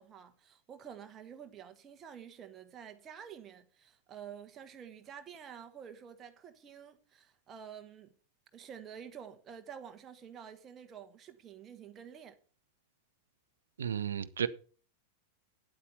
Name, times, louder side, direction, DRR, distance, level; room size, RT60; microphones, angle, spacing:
voice 1, 0.0-8.1 8.5-12.4, right 8 dB, 25° right, 1.2 m, -49 dB
voice 2, 13.8-14.5, right 8 dB, 65° right, 0.6 m, -33 dB
9.2 x 8.4 x 6.8 m
figure-of-eight pair, 90°, 0 cm